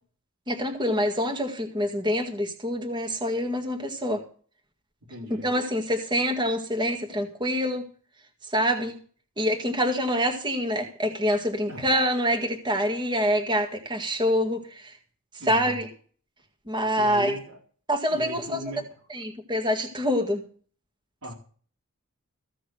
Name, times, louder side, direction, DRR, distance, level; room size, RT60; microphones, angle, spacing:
voice 1, 0.5-4.2 5.4-7.9 8.5-9.0 9.4-15.0 15.5-15.9 16.7-17.4 17.9-18.6 19.1-20.4, equal, 20° right, 1.9 m, -26 dB
voice 2, 5.1-5.5 11.7-11.9 15.4-15.8 17.0-17.6 18.1-19.0 21.2-21.3, equal, 85° right, 4.0 m, -38 dB
15.5 x 6.6 x 7.7 m
head